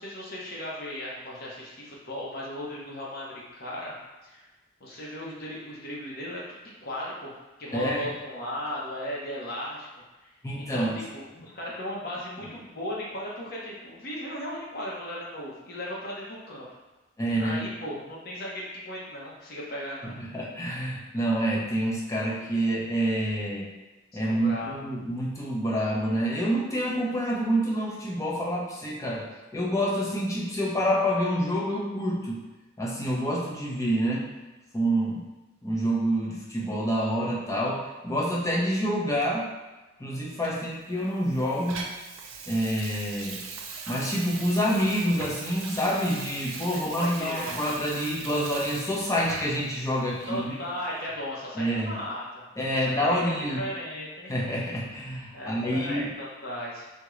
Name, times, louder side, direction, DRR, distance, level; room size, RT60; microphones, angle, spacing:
voice 1, 0.0-3.9 4.2-4.5 4.8-7.3 7.6-9.9 10.2-10.3 10.6-16.7 17.4-20.1 24.1-24.8 46.9-47.6 50.2-52.4 52.9-54.3 55.3-56.9, equal, 50° left, -4 dB, 0.7 m, -36 dB
voice 2, 7.7-8.1 10.4-10.9 17.2-17.7 20.0-23.7 24.1-29.3 29.5-32.4 32.8-34.3 34.7-35.2 35.6-39.5 40.0-41.8 42.5-43.4 43.9-50.5 51.6-51.9 52.6-53.6 54.3-56.1, equal, 15° left, -4 dB, 0.6 m, -27 dB
Water tap faucet / Sink (filling or washing), 40.4-49.7 50.2-50.4, right 4 dB, 70° right, 0.4 m, -40 dB
3.6 x 2.1 x 3.0 m, 1.1 s
head